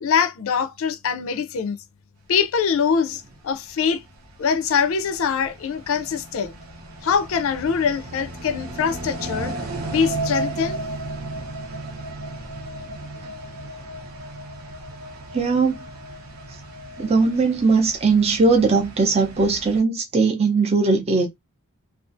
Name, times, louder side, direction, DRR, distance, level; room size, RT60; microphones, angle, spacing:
voice 1, 0.0-1.8 2.3-4.0 4.4-6.6 7.0-9.5 9.9-10.8, left 6 dB, 65° left, 0.4 m, -23 dB
sound 1, 3.2-19.8, right 2 dB, 75° right, 0.9 m, -35 dB
voice 2, 15.3-15.8 17.0-21.3, right 4 dB, 30° right, 0.5 m, -19 dB
2.4 x 2.3 x 2.5 m
head